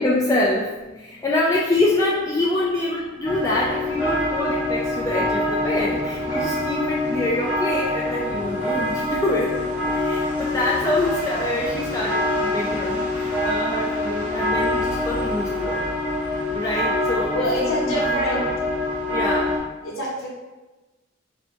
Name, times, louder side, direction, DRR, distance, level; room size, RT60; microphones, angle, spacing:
voice 1, 0.0-15.8 16.5-17.3 17.6-18.5 19.1-19.6, left 2 dB, 15° left, -5 dB, 0.3 m, -25 dB
sound 1, 3.2-19.6, left 1 dB, 5° right, 1.2 m, -25 dB
voice 2, 17.3-18.4 19.8-20.3, equal, 75° left, -5 dB, 0.8 m, -26 dB
4.1 x 2.1 x 4.3 m, 1.2 s
head